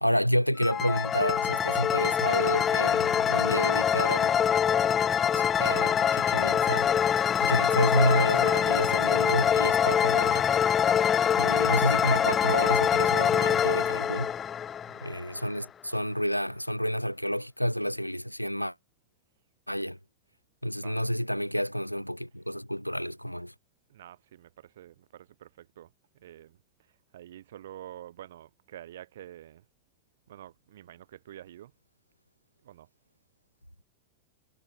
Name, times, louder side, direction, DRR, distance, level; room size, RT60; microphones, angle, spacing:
voice 1, 0.0-4.3 5.3-6.9 7.4-10.5 11.4-14.3 15.0-18.7 19.7-20.0 20.6-23.5, equal, 90° left, 2.2 m, -29 dB
sound 1, 0.6-15.4, left 8 dB, 25° left, 0.6 m, -24 dB
voice 2, 14.9-15.3 20.8-21.0 23.9-29.6 30.3-31.7 32.6-32.9, right 12 dB, 60° right, 5.9 m, -48 dB
figure-of-eight pair, 90°, 0 cm